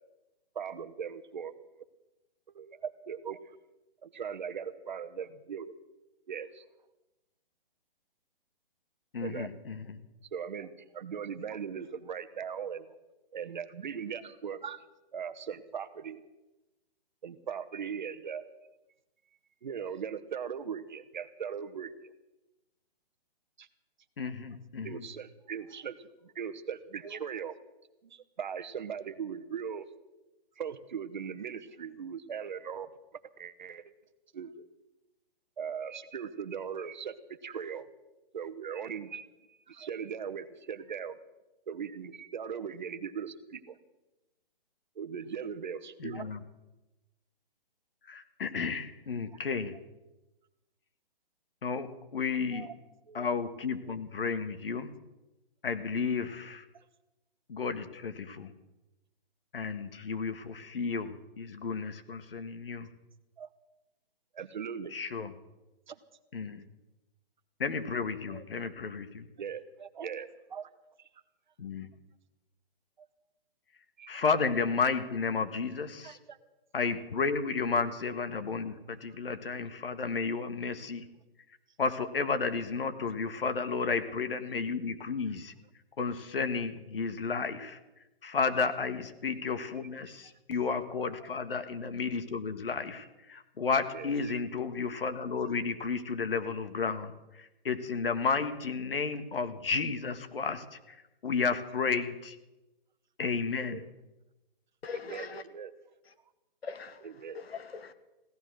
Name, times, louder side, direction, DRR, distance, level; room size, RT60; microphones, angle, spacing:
voice 1, 0.5-1.8 2.5-3.6 4.0-5.7 6.3-6.6 9.2-9.5 10.3-12.9 13.3-14.8 15.1-16.2 17.2-18.5 19.6-22.1 23.6-23.7 24.8-27.5 28.0-29.9 30.6-32.9 33.4-33.9 34.3-34.7 35.6-37.2 37.4-37.9 38.3-39.2 39.7-41.2 41.7-43.8 45.0-46.3 49.3-49.4 52.5-52.7 53.1-53.3 56.7-56.8 63.4-63.5 64.3-64.9 65.9-66.0 68.3-68.4 69.4-70.7 74.0-74.1 76.0-76.4 93.9-94.4 103.7-103.9 104.9-105.7 107.2-107.4, right 7 dB, 50° right, 1.1 m, -39 dB
voice 2, 9.1-10.0 24.2-25.1 46.0-46.4 48.1-49.7 51.6-52.7 53.1-54.9 55.6-56.7 57.5-58.5 59.5-62.9 64.9-65.3 66.3-66.6 67.6-69.3 71.6-71.9 74.1-76.2 76.7-81.1 81.8-85.5 86.0-87.8 88.2-101.0 101.2-102.4 103.2-103.8, left 5 dB, 70° left, 1.6 m, -32 dB
voice 3, 104.8-105.4 106.0-106.1 106.6-107.9, left 5 dB, 85° left, 1.5 m, -42 dB
16.5 x 12.5 x 6.3 m
hypercardioid pair, 170°, 30 cm